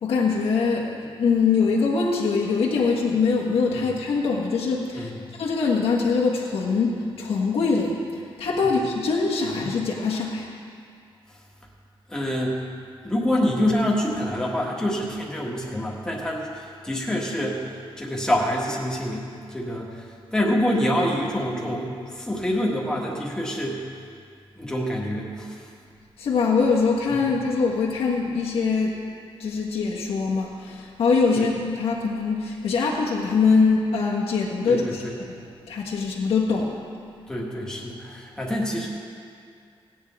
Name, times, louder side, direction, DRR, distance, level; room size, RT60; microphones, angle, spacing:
voice 1, 0.0-5.1 5.4-8.0 8.4-10.5 26.2-29.0 29.4-35.0 35.3-35.4 35.7-36.8, left 4 dB, 85° left, -4 dB, 1.5 m, -23 dB
voice 2, 4.9-5.3 8.6-8.8 12.1-12.6 13.0-17.6 18.0-20.0 20.3-23.8 24.5-25.6 31.3-31.5 34.6-35.1 37.3-38.9, equal, 5° left, -3 dB, 1.6 m, -26 dB
18.0 x 9.3 x 3.6 m, 2.3 s
wide cardioid pair, 170°, 10 cm